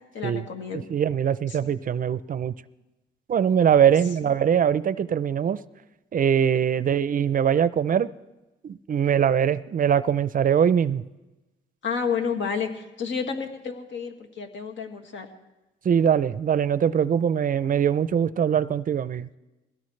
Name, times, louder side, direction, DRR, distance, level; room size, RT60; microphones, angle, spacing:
voice 1, 0.1-0.9 1.5-1.6 11.8-15.3, left 6 dB, 70° left, 4 dB, 2.0 m, -30 dB
voice 2, 0.7-2.5 3.3-5.6 6.1-8.1 8.6-11.0 15.8-19.3, right 8 dB, 45° right, 16 dB, 0.5 m, -22 dB
22.0 x 17.0 x 3.3 m, 1.1 s
cardioid pair, 90°, 20 cm